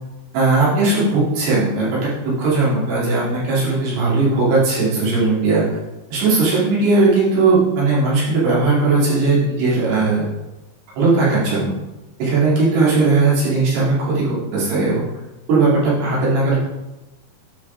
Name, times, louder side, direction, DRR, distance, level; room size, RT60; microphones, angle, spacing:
voice 1, 0.3-2.1 2.4-5.8 6.1-10.3 11.0-11.7 12.2-15.1 15.5-16.6, right 3 dB, 85° right, -8 dB, 5.1 m, -18 dB
12.0 x 5.2 x 3.5 m, 1.0 s
omnidirectional pair, 4.7 m